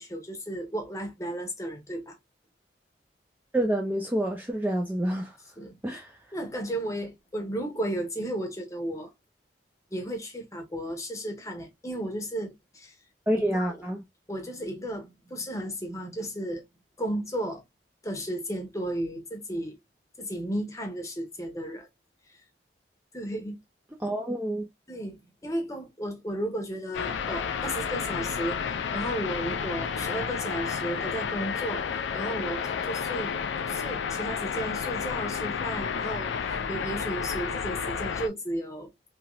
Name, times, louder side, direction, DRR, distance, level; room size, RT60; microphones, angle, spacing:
voice 1, 0.0-2.2 5.6-6.0 6.3-9.1 9.9-12.9 13.5-13.8 14.3-16.6 17.0-17.6 18.0-19.8 20.2-21.9 22.3-22.4 23.1-23.6 24.9-33.4 33.7-38.9, right 1 dB, 15° left, 0.8 m, -34 dB
voice 2, 3.5-5.4 5.8-6.1 13.3-14.0 24.0-24.7, right 1 dB, 10° right, 0.3 m, -28 dB
sound 1, 26.9-38.3, left 6 dB, 80° left, 0.4 m, -31 dB
3.0 x 2.8 x 2.2 m
head